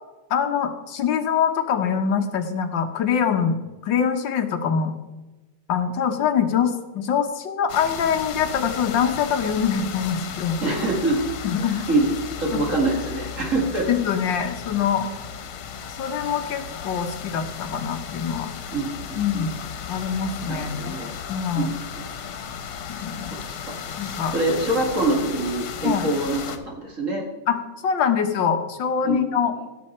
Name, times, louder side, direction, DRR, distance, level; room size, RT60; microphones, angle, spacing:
voice 1, 0.3-4.9 5.7-10.6 11.4-11.8 12.5-12.6 13.9-15.1 16.0-18.5 19.2-19.6 19.9-21.0 21.3-21.7 23.0-23.4 24.0-24.4 25.8-26.1 27.5-29.6, left 7 dB, 65° left, 6 dB, 1.7 m, -24 dB
sound 1, 7.7-26.6, left 7 dB, 90° left, 1.8 m, -35 dB
voice 2, 10.6-11.2 11.6-13.9 18.7-18.9 19.3-19.4 19.9-20.0 20.5-21.1 21.5-22.1 23.5-23.8 24.3-27.3 29.0-29.4, right 2 dB, 40° right, -1 dB, 2.1 m, -25 dB
16.0 x 7.4 x 4.3 m, 1.1 s
omnidirectional pair, 2.3 m